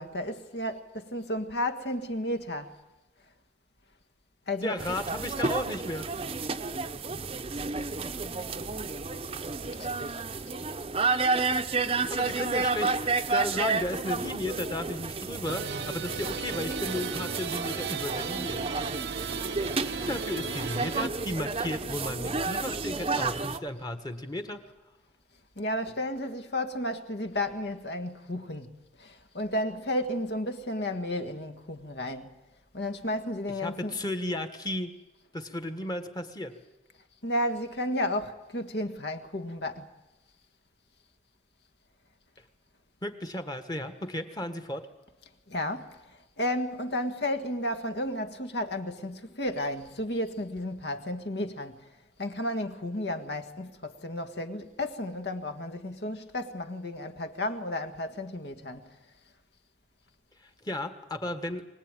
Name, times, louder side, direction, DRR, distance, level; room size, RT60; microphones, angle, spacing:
voice 1, 0.0-2.7 4.5-4.8 9.7-10.2 11.9-12.1 19.9-20.1 25.6-28.7 29.0-32.4 32.7-33.9 37.2-39.9 45.5-51.8 52.2-58.9, left 1 dB, 65° left, 1.7 m, -33 dB
voice 2, 4.6-6.1 11.4-11.6 11.9-18.8 20.1-24.6 33.6-34.9 35.3-36.6 43.0-44.9 60.4-61.6, left 1 dB, 20° left, 1.5 m, -34 dB
sound 1, 4.8-23.6, right 4 dB, 30° right, 0.7 m, -31 dB
sound 2, 15.4-21.1, right 6 dB, 70° right, 0.8 m, -36 dB
24.0 x 18.5 x 9.1 m
head